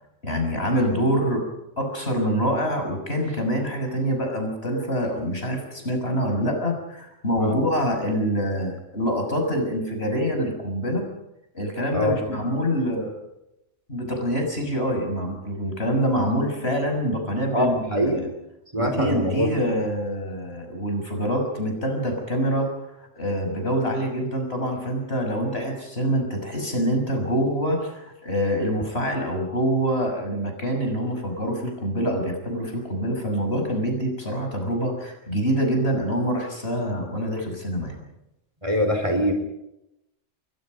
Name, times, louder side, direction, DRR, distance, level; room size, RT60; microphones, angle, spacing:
voice 1, 0.2-1.5 1.8-11.1 11.5-13.1 13.9-18.2 18.8-22.7 23.1-38.0, equal, 55° left, 3 dB, 6.6 m, -25 dB
voice 2, 17.5-18.2 18.7-19.6 38.6-39.3, equal, 25° right, 5 dB, 4.3 m, -23 dB
29.0 x 23.5 x 5.3 m, 0.86 s
omnidirectional pair, 1.3 m